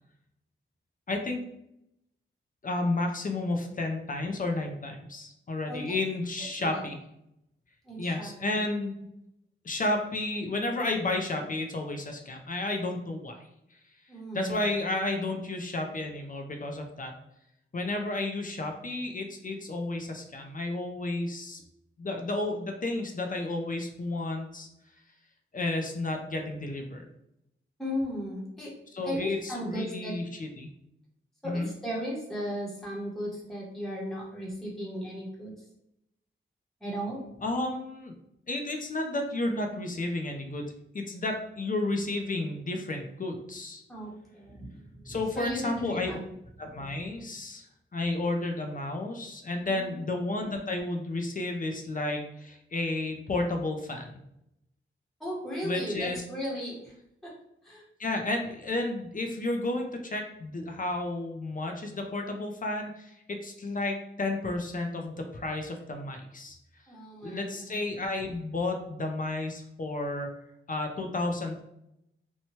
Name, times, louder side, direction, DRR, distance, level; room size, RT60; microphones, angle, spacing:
voice 1, 1.1-1.4 2.6-7.0 8.0-9.0 9.6-13.5 14.3-17.1 17.7-21.6 22.0-24.7 25.5-27.0 28.9-30.7 31.4-31.7 37.4-38.1 38.5-43.8 45.1-46.2 46.6-47.7 47.9-54.1 55.6-56.2 58.0-66.6 67.2-70.3 70.7-71.6, left 2 dB, 40° left, 3 dB, 0.4 m, -32 dB
voice 2, 7.8-8.6 14.1-14.7 27.8-28.7 29.0-30.2 31.4-35.5 36.8-37.2 43.9-46.2 49.7-50.0 55.2-56.9 57.2-57.4 57.6-57.8 66.9-67.8, equal, ahead, -5 dB, 0.8 m, -36 dB
2.8 x 2.2 x 2.9 m, 0.79 s
wide cardioid pair, 110°, 21 cm